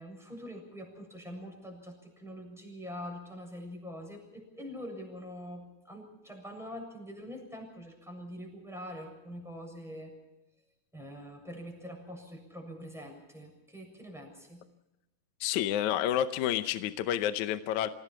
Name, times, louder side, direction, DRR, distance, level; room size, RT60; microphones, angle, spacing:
voice 1, 0.0-10.1 10.9-14.7, equal, ahead, 1 dB, 7.0 m, -44 dB
voice 2, 15.4-17.9, left 11 dB, 75° left, 10 dB, 2.1 m, -29 dB
27.5 x 18.0 x 6.0 m, 0.98 s
omnidirectional pair, 3.6 m